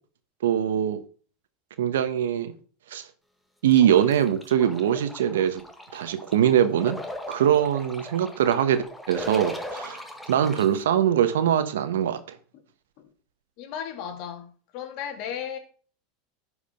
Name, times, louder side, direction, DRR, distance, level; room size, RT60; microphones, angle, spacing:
voice 1, 0.4-1.0 1.8-2.5 2.9-3.1 3.6-5.6 5.9-7.0 7.3-10.0 10.3-12.4, right 10 dB, 85° right, 1.0 m, -22 dB
sound 1, 3.7-10.7, left 1 dB, 5° left, 1.6 m, -39 dB
voice 2, 13.6-14.5 14.7-15.6, left 8 dB, 60° left, 1.9 m, -34 dB
11.0 x 5.0 x 5.0 m
hypercardioid pair, 105°, 0 cm